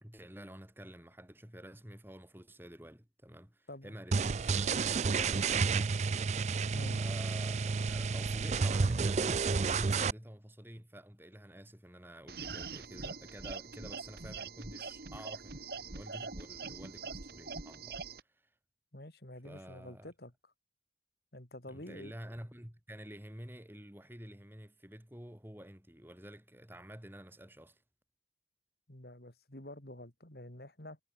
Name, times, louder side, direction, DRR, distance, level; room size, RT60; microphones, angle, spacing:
voice 1, 0.0-6.6 7.0-18.0 18.3-18.5 19.4-20.1 21.6-27.8, equal, 10° right, 2.8 m, -50 dB
sound 1, 4.1-10.1, right 4 dB, 40° right, 0.4 m, -30 dB
sound 2, 12.3-18.2, right 4 dB, 55° right, 1.9 m, -43 dB
voice 2, 18.9-20.3 21.3-22.1 28.9-31.0, left 1 dB, 55° left, 3.0 m, -48 dB
head